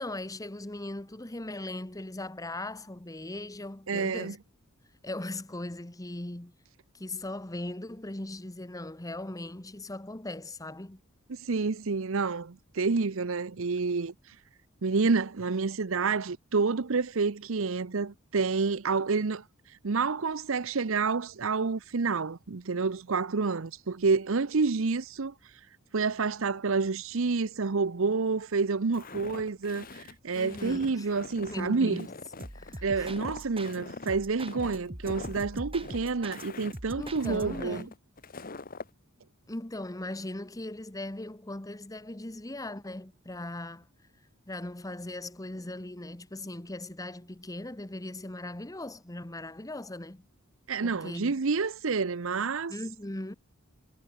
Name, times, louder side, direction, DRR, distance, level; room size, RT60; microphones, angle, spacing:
voice 1, 0.0-4.4 5.0-6.5 6.9-11.0 30.3-31.1 31.5-32.1 32.5-33.1 37.0-37.9 39.5-43.9 44.5-50.2 50.8-51.3 52.7-53.3, left 1 dB, 15° left, 1.1 m, -39 dB
voice 2, 3.9-4.4 11.3-14.1 14.8-19.4 19.8-25.3 25.9-32.1 32.8-37.9 50.7-52.7, right 4 dB, 65° right, 0.7 m, -29 dB
Walk footsteps, 28.9-38.9, left 3 dB, 45° left, 1.5 m, -44 dB
sound 1, 32.4-33.8 34.1-36.4 36.7-37.7, right 1 dB, 25° right, 3.2 m, -42 dB
head